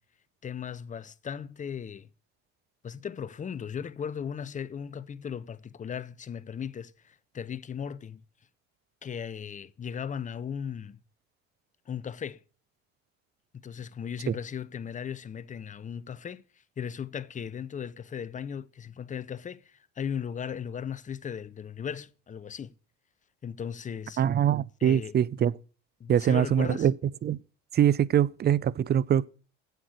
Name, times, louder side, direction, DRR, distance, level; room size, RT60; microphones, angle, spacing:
voice 1, 0.4-2.1 2.8-8.2 9.0-11.0 11.9-12.4 13.6-16.4 16.8-22.7 23.4-24.2 24.8-25.1 26.0-26.9, left 7 dB, 20° left, 0.6 m, -37 dB
voice 2, 24.2-25.5 26.1-26.9 27.2-27.4 27.7-29.3, right 9 dB, 30° right, 0.5 m, -23 dB
8.0 x 7.7 x 7.8 m
supercardioid pair, 80°, 35 cm